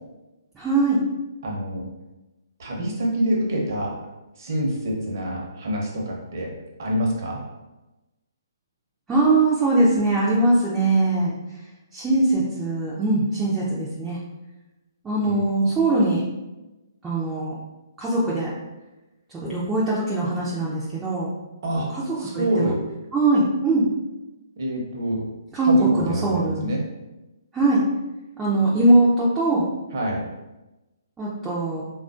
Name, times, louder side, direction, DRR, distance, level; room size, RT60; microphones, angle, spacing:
voice 1, 0.6-1.0 9.1-11.4 11.9-14.2 15.0-16.2 17.0-17.5 18.0-18.5 19.4-21.3 21.9-22.7 23.1-23.9 25.5-26.7 27.5-27.8 28.4-29.7 31.2-31.8, right 2 dB, 10° right, -7 dB, 0.5 m, -21 dB
voice 2, 1.4-1.8 2.6-4.0 4.4-6.5 6.8-7.4 15.2-15.4 21.6-21.9 22.2-22.8 24.6-25.2 25.7-26.8 29.9-30.3, equal, 50° right, -2 dB, 0.8 m, -26 dB
3.5 x 2.4 x 2.4 m, 1.0 s
figure-of-eight pair, 130°, 2 cm